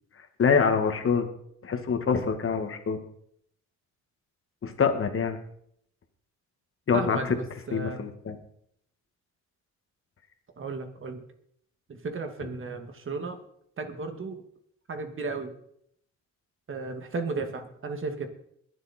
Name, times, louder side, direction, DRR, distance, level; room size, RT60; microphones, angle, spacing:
voice 1, 0.4-1.3 1.6-3.0 4.6-5.4 6.9-7.4 7.7-8.4, left 6 dB, 45° left, 7 dB, 2.1 m, -25 dB
voice 2, 6.9-8.0 10.6-11.2 11.9-13.4 13.8-14.4 14.9-15.5 16.7-18.3, right 3 dB, 45° right, 6 dB, 2.3 m, -34 dB
21.5 x 7.6 x 4.5 m, 0.69 s
cardioid pair, 90°, 30 cm